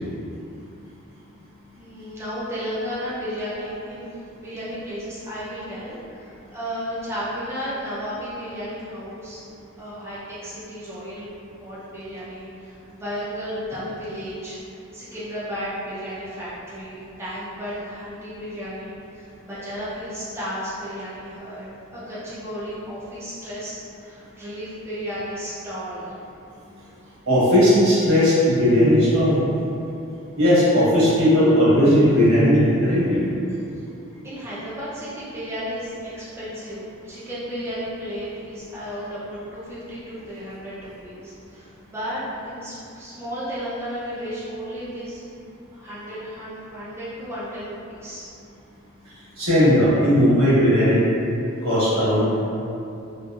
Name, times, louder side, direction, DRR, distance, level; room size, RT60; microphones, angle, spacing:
voice 1, 1.8-9.4 9.8-11.3 11.6-14.6 14.9-21.7 21.9-26.1 34.2-45.2 45.7-48.3, equal, 10° right, -10 dB, 0.4 m, -33 dB
voice 2, 27.3-29.4 30.4-33.2 49.4-51.0 51.6-52.3, equal, 70° right, -10 dB, 1.2 m, -17 dB
2.8 x 2.8 x 2.3 m, 2.7 s
head